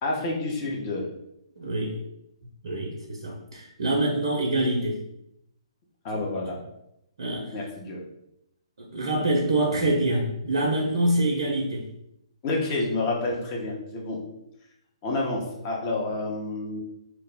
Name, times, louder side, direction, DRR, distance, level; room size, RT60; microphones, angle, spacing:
voice 1, 0.0-1.0 6.0-6.6 7.5-8.0 12.4-14.2 15.0-16.8, left 2 dB, 30° left, -2 dB, 0.7 m, -29 dB
voice 2, 1.6-2.0 2.6-5.0 7.2-7.5 8.8-11.8, right 1 dB, 70° right, -1 dB, 0.5 m, -25 dB
2.2 x 2.0 x 3.3 m, 0.82 s
figure-of-eight pair, 130°, 3 cm